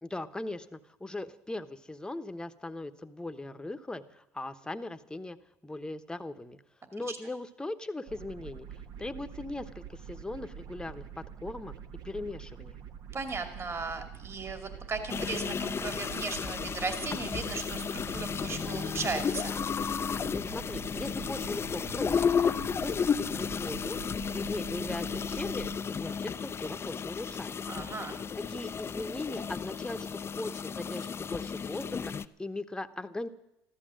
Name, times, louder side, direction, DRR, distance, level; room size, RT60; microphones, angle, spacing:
voice 1, 0.0-5.4 5.6-6.6 6.9-8.7 9.0-11.7 12.0-12.8 20.3-24.0 24.3-27.6 28.5-32.1 32.4-33.3, left 2 dB, 10° left, 9 dB, 1.1 m, -39 dB
sound 1, 8.1-25.8, right 8 dB, 60° right, 1.4 m, -46 dB
voice 2, 13.1-19.6 27.7-28.2, right 4 dB, 35° right, 6 dB, 2.6 m, -36 dB
sound 2, 15.1-32.3, left 6 dB, 30° left, 0.6 m, -33 dB
14.0 x 12.5 x 7.7 m, 0.85 s
supercardioid pair, 75°, 8 cm